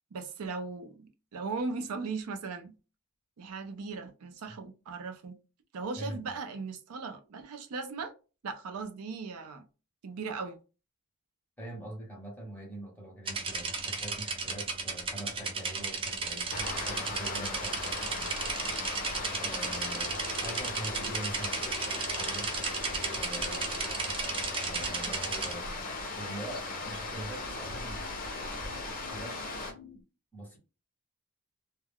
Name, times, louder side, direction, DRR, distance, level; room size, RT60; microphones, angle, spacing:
voice 1, 0.1-2.8 3.4-5.4 5.7-8.1 8.4-9.7 10.0-10.6 23.5-23.8, right 4 dB, 80° right, 0.5 m, -38 dB
voice 2, 6.0-6.3 11.6-18.3 19.3-21.7 22.1-22.5 23.1-23.8 24.6-28.0 29.0-29.4 30.3-30.6, right 1 dB, 10° left, 1.0 m, -43 dB
sound 1, 13.3-25.5, right 4 dB, 25° right, 0.4 m, -35 dB
sound 2, 16.5-29.7, left 2 dB, 40° left, 0.7 m, -38 dB
sound 3, 19.5-30.0, left 2 dB, 80° left, 0.5 m, -52 dB
2.3 x 2.1 x 3.4 m
head